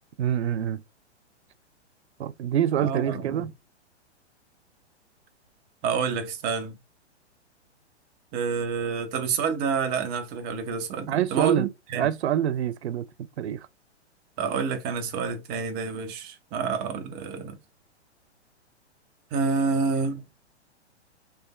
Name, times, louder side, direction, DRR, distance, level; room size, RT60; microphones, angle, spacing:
voice 1, 0.2-0.8 2.2-3.5 11.1-11.7 11.9-13.0 13.4-13.6, right 10 dB, 65° right, 0.5 m, -25 dB
voice 2, 2.8-3.5 5.8-6.8 8.3-12.1 14.4-17.6 19.3-20.2, right 5 dB, 30° right, 0.9 m, -28 dB
3.5 x 3.3 x 2.2 m
hypercardioid pair, 120°, 35 cm